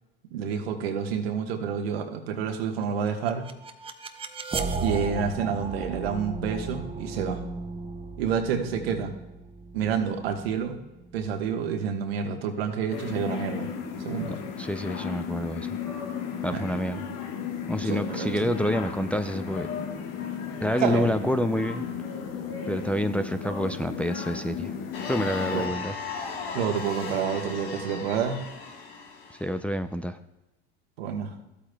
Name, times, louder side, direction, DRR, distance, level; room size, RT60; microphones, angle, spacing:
voice 1, 0.3-3.4 4.8-7.4 8.2-9.1 9.7-10.8 11.1-13.7 14.0-14.4 16.5-16.6 17.8-18.5 20.8-21.1 25.5-25.7 26.5-28.4 31.0-31.3, right 7 dB, 90° right, 5 dB, 1.3 m, -28 dB
sound 1, 3.1-12.0, right 3 dB, 20° right, 0.8 m, -36 dB
sound 2, 12.9-25.7, left 7 dB, 55° left, 1.3 m, -35 dB
voice 2, 14.6-15.7 16.4-17.0 17.7-19.7 20.6-21.9 22.7-24.7 25.1-26.0 29.4-30.2, left 1 dB, 5° left, 8 dB, 0.3 m, -28 dB
sound 3, 24.9-29.6, left 5 dB, 80° left, 1.4 m, -36 dB
14.0 x 8.4 x 2.2 m, 1.0 s
supercardioid pair, 100°, 29 cm